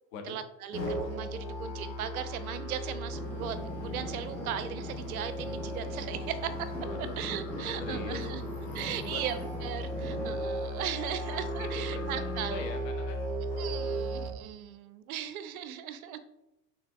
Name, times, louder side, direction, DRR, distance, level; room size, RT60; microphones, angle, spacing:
voice 1, 0.3-6.7 7.0-8.4 8.7-12.7 13.6-16.2, right 10 dB, 60° right, 12 dB, 0.5 m, -38 dB
Musical instrument, 0.7-14.3, equal, 90° left, 1.3 m, -36 dB
Traffic noise roadway noise / Engine, 3.1-10.4, equal, 5° left, 0.9 m, -42 dB
voice 2, 6.9-7.2 7.8-8.3 8.8-9.2 11.6-13.3, left 5 dB, 50° left, 6 dB, 0.8 m, -42 dB
5.6 x 3.4 x 2.4 m, 0.91 s
figure-of-eight pair, 80°, 50 cm